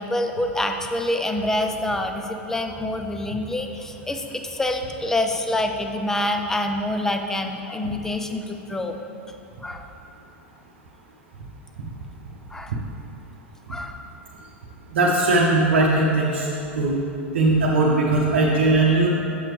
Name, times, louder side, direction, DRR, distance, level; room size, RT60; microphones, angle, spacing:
voice 1, 0.0-9.0 9.6-9.9 12.5-12.7 13.7-14.1, left 1 dB, 5° left, 5 dB, 0.5 m, -26 dB
voice 2, 14.9-16.5 16.8-17.0 17.3-19.1, right 2 dB, 60° right, -4 dB, 0.8 m, -19 dB
7.4 x 6.8 x 3.2 m, 2.8 s
figure-of-eight pair, 90°, 7 cm